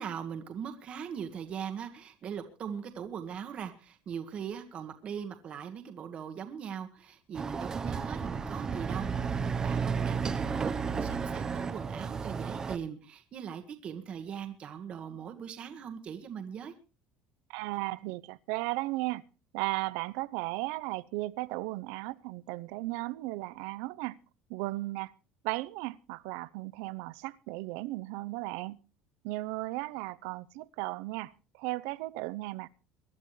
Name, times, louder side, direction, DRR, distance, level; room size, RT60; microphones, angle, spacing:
voice 1, 0.0-16.7, right 7 dB, 35° right, 1.6 m, -40 dB
Chatter / Car passing by / Motorcycle, 7.3-12.8, right 5 dB, 20° right, 0.9 m, -32 dB
voice 2, 17.5-19.2 19.5-24.2 24.5-25.1 25.4-28.8 29.2-31.3 31.6-32.7, right 20 dB, 80° right, 0.7 m, -35 dB
23.0 x 11.5 x 3.2 m
cardioid pair, 155°, 3 cm